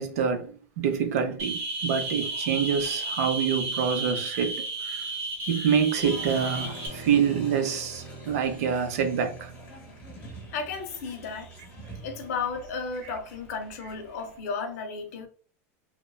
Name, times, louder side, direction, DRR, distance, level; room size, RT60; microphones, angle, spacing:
voice 1, 0.0-5.1 5.5-9.5, right 7 dB, 75° right, 0.5 m, -26 dB
sound 1, 1.4-6.9, right 2 dB, 30° right, 0.6 m, -32 dB
Applause, 6.0-14.4, right 2 dB, 15° left, 0.7 m, -44 dB
voice 2, 10.5-11.5 12.0-15.3, left 5 dB, 75° left, 0.6 m, -33 dB
2.9 x 2.1 x 2.3 m
supercardioid pair, 170°, 9 cm